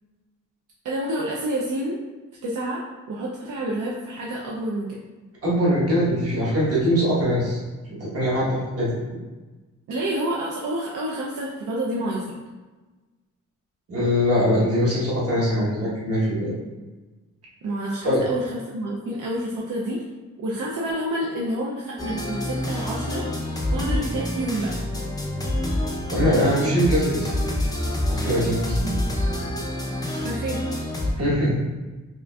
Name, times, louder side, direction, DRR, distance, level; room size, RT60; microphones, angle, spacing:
voice 1, 0.8-2.0 2.4-2.8 3.1-5.0 9.9-12.4 17.6-20.0 20.4-23.2 23.7-24.7 28.8-29.0 30.2-30.6, right 1 dB, 80° right, -4 dB, 0.5 m, -28 dB
voice 2, 5.4-7.6 7.8-8.9 13.9-16.5 18.0-18.2 26.1-27.3 28.1-28.8 31.2-31.5, equal, 50° right, -6 dB, 1.2 m, -22 dB
sound 1, 22.0-31.1, left 1 dB, 10° left, 0.5 m, -27 dB
4.9 x 2.5 x 2.3 m, 1.2 s
wide cardioid pair, 175°, 31 cm